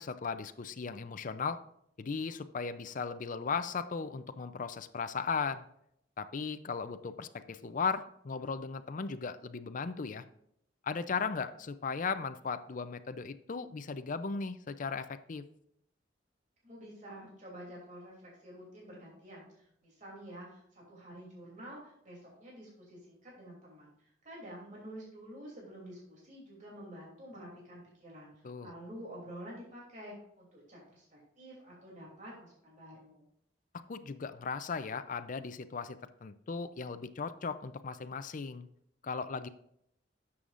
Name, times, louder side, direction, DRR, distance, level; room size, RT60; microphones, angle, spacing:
voice 1, 0.0-1.6 2.0-5.7 6.2-10.2 10.8-15.4 28.4-28.7 33.9-38.7 39.0-39.5, left 5 dB, 45° left, 10 dB, 0.5 m, -37 dB
voice 2, 16.6-33.3, equal, 45° right, -4 dB, 3.0 m, -49 dB
11.0 x 7.0 x 2.5 m, 0.72 s
head